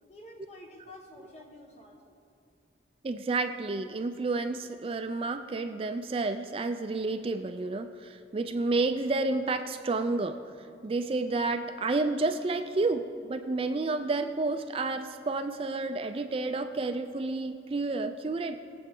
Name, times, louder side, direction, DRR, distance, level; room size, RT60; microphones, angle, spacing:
voice 1, 0.1-2.1, left 1 dB, 35° left, 1 dB, 1.4 m, -49 dB
voice 2, 3.0-10.4 10.8-18.6, right 3 dB, 30° right, 8 dB, 0.3 m, -30 dB
20.0 x 7.7 x 3.8 m, 2.5 s
head